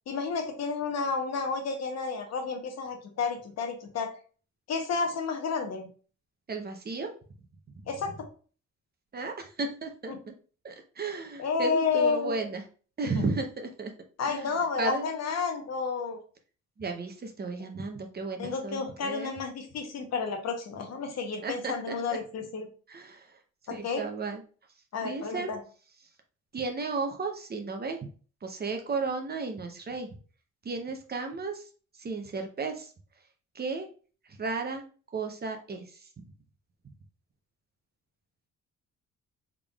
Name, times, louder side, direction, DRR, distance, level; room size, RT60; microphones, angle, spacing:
voice 1, 0.1-4.1 4.7-5.9 7.9-8.1 10.1-10.2 11.4-12.5 13.1-13.3 14.2-16.2 18.4-22.7 23.7-24.0 24.9-25.6, left 5 dB, 60° left, 5 dB, 0.9 m, -31 dB
voice 2, 6.5-7.1 9.1-10.1 10.6-12.6 13.0-13.9 14.3-14.5 14.8-15.0 16.8-19.3 21.4-21.9 22.9-23.2 23.7-24.4 25.0-25.5 26.5-28.0 28.4-30.1 30.6-31.6 32.0-32.9 33.5-33.9 34.4-34.8 35.1-35.8, right 3 dB, 30° right, 4 dB, 0.7 m, -34 dB
3.7 x 3.4 x 2.3 m, 0.39 s
cardioid pair, 90°, 30 cm